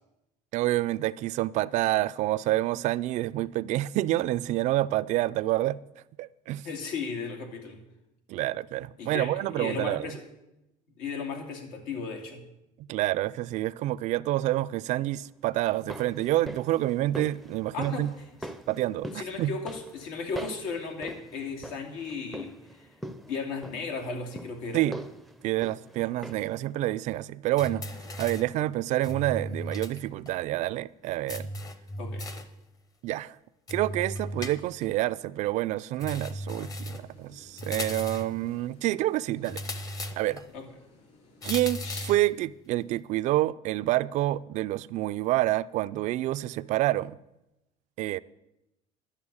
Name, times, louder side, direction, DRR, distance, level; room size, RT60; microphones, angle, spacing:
voice 1, 0.5-5.8 6.2-6.6 8.3-10.1 12.9-18.1 18.7-19.5 24.7-25.0 25.4-27.9 28.2-31.5 33.0-33.3 33.7-39.6 40.2-40.4 41.4-47.2 48.0-48.2, right 15 dB, 55° right, 0.4 m, -28 dB
voice 2, 6.6-7.8 9.0-10.2 11.0-12.4 17.7-18.1 19.1-22.9 23.3-24.9 32.0-32.3 40.5-40.6, left 4 dB, 85° left, 2.6 m, -35 dB
sound 1, 15.6-26.6 26.9-27.0, right 1 dB, ahead, 0.6 m, -43 dB
sound 2, 27.6-28.6 29.0-30.0 30.2-30.3 31.3-32.6 33.7-34.9 36.0-37.1 37.6-38.4 39.4-40.5 41.4-42.3, left 1 dB, 25° left, 0.9 m, -36 dB
sound 3, 36.6-42.0, left 3 dB, 50° left, 3.5 m, -53 dB
11.5 x 6.8 x 8.6 m
cardioid pair, 145°, 14 cm